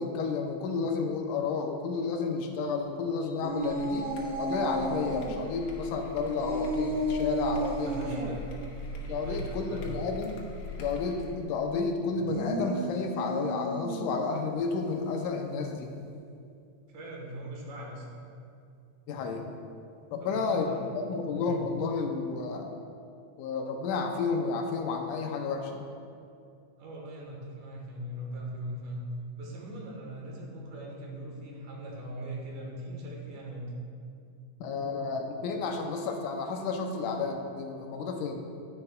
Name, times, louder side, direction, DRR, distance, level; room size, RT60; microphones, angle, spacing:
voice 1, 0.0-4.1 4.4-8.3 9.1-10.4 10.8-15.9 19.1-19.4 20.1-20.7 21.0-22.7 23.4-25.8 34.6-38.4, left 4 dB, 85° left, 3 dB, 2.1 m, -31 dB
sound 1, 3.4-5.4 6.4-8.3 12.1-14.4, right 1 dB, 90° right, 1.2 m, -33 dB
sound 2, 3.6-11.4, left 1 dB, 65° left, 2.1 m, -42 dB
voice 2, 7.7-8.5 9.0-10.0 16.9-18.1 20.2-20.9 21.3-21.6 26.8-29.1 29.3-33.7, right 1 dB, 75° right, -2 dB, 2.7 m, -40 dB
9.8 x 9.7 x 2.3 m, 2.4 s
omnidirectional pair, 3.7 m